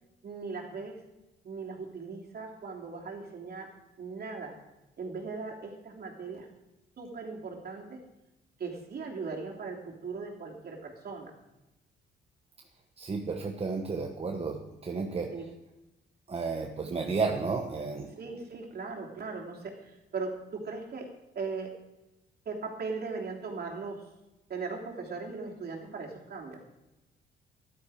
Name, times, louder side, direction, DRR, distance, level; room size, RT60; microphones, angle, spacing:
voice 1, 0.2-1.0 1.4-3.7 4.0-4.5 5.0-6.5 7.0-8.0 8.6-11.3 15.3-15.5 16.9-17.2 18.2-21.1 21.3-21.7 22.4-24.0 24.5-26.6, right 4 dB, 50° right, 0 dB, 3.1 m, -38 dB
voice 2, 13.0-15.4 16.3-18.2, right 4 dB, 30° right, 3 dB, 1.1 m, -32 dB
13.5 x 11.5 x 4.9 m, 0.99 s
cardioid pair, 90°, 20 cm